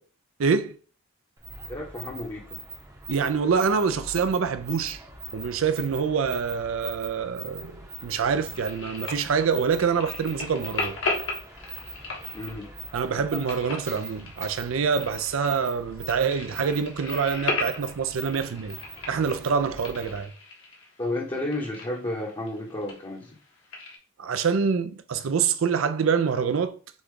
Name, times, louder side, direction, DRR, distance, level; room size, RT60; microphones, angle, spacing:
voice 1, 0.4-0.8 3.1-5.0 5.3-11.0 12.9-18.8 19.1-20.3 24.2-26.8, right 6 dB, 70° right, 0.4 m, -26 dB
sound 1, 1.4-20.3, right 2 dB, 15° right, 0.7 m, -42 dB
voice 2, 1.7-2.6 12.3-12.7 21.0-23.3, left 1 dB, 25° left, 0.8 m, -32 dB
sound 2, 8.5-24.0, left 3 dB, 65° left, 1.3 m, -37 dB
6.1 x 2.3 x 3.7 m
head